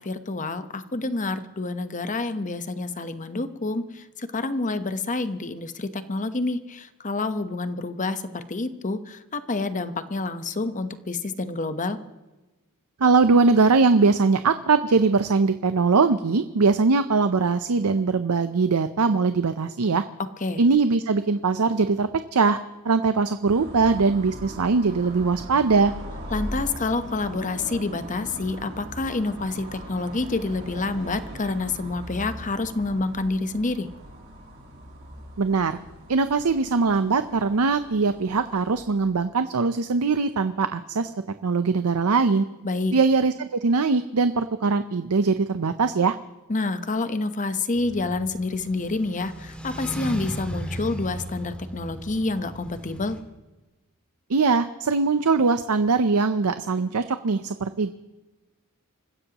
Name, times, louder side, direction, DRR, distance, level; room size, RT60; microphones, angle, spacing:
voice 1, 0.0-12.0 20.4-20.6 26.3-33.9 42.6-42.9 46.5-53.2, left 3 dB, 35° left, 10 dB, 1.0 m, -28 dB
voice 2, 13.0-20.0 20.6-22.6 22.8-25.9 35.4-35.8 36.1-41.1 41.4-42.5 42.9-46.2 54.3-57.9, right 4 dB, 85° right, 10 dB, 0.6 m, -21 dB
sound 1, 23.4-38.8, equal, 55° right, 5.5 m, -40 dB
sound 2, 47.7-53.2, equal, 5° left, 2.3 m, -36 dB
27.0 x 15.5 x 3.0 m, 1.1 s
head